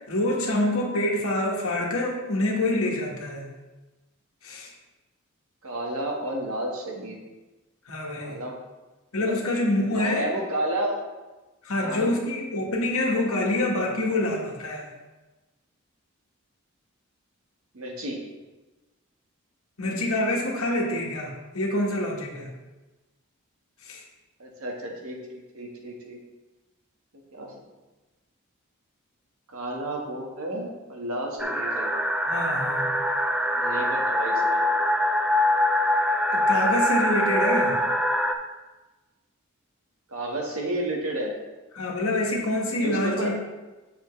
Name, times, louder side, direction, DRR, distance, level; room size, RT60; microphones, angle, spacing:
voice 1, 0.1-3.5 4.4-4.7 7.9-8.4 9.1-10.3 11.6-14.9 19.8-22.5 23.8-24.0 32.3-32.9 36.3-37.8 41.7-43.3, left 1 dB, 75° left, -1 dB, 1.5 m, -26 dB
voice 2, 5.6-7.2 8.2-8.6 9.2-9.3 9.9-10.9 11.8-12.1 17.7-18.2 24.4-26.2 27.3-27.5 29.5-31.9 33.5-34.7 40.1-41.3 42.7-43.3, right 1 dB, 80° right, 0 dB, 1.5 m, -31 dB
sound 1, 31.4-38.3, left 1 dB, 5° right, 0.4 m, -23 dB
7.8 x 6.7 x 3.2 m, 1.1 s
head